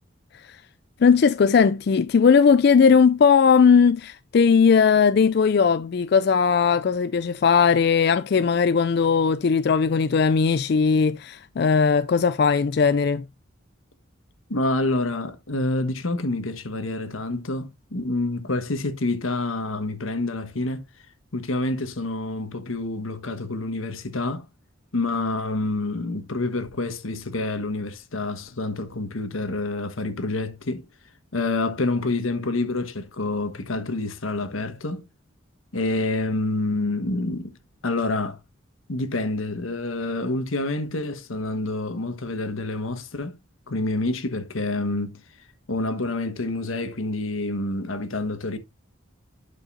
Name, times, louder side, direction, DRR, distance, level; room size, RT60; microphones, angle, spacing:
voice 1, 1.0-13.2, left 6 dB, 50° left, 0.3 m, -18 dB
voice 2, 14.5-20.8 21.3-24.4 24.9-30.8 31.3-35.0 35.7-37.5 37.8-38.4 38.9-43.4 43.7-45.2 45.7-48.6, left 2 dB, 90° left, 1.3 m, -27 dB
11.0 x 5.3 x 2.5 m
head